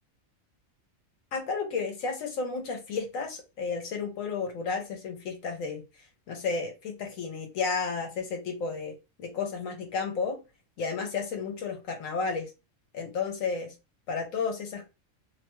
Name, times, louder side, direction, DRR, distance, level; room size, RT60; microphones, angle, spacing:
voice 1, 1.3-5.8 6.3-10.4 10.8-12.5 12.9-13.7 14.1-14.8, left 5 dB, 75° left, 3 dB, 1.1 m, -32 dB
2.7 x 2.2 x 3.0 m, 0.27 s
omnidirectional pair, 1.4 m